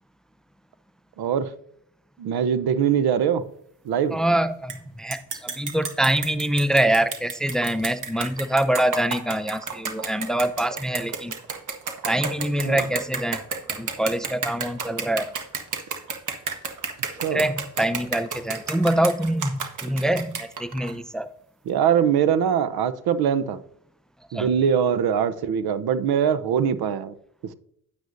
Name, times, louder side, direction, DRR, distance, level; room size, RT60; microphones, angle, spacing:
voice 1, 1.2-1.5 2.2-3.4 3.8-4.2 12.6-12.8 17.2-17.5 21.7-23.6 24.3-27.1, right 8 dB, 70° right, 0.8 m, -22 dB
voice 2, 4.1-11.3 12.1-13.4 13.8-15.3 17.2-21.3 24.3-24.5, right 1 dB, ahead, 0.6 m, -24 dB
sound 1, 4.7-4.8 5.1-20.9, right 5 dB, 50° right, 1.5 m, -31 dB
9.9 x 9.1 x 2.6 m
supercardioid pair, 55°, 39 cm